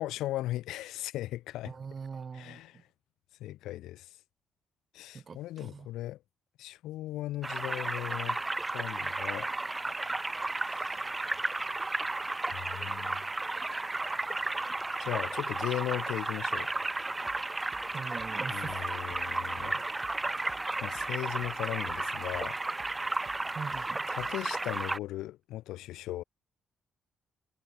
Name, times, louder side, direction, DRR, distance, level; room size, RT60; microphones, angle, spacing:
voice 1, 0.0-1.7 2.3-2.8 3.4-4.2 4.9-6.2 6.6-8.4 8.7-9.5 10.6-11.0 12.5-13.3 15.0-16.7 18.5-19.9 20.8-22.6 24.1-26.2, left 15 dB, 90° left, 1.8 m, -37 dB
voice 2, 1.6-2.8 5.1-5.9 17.9-18.8 23.5-24.0, right 5 dB, 40° right, 3.1 m, -42 dB
sound 1, 7.4-25.0, right 2 dB, 20° right, 0.5 m, -33 dB
sound 2, 17.3-24.5, right 8 dB, 55° right, 5.2 m, -55 dB
cardioid pair, 90°, 0 cm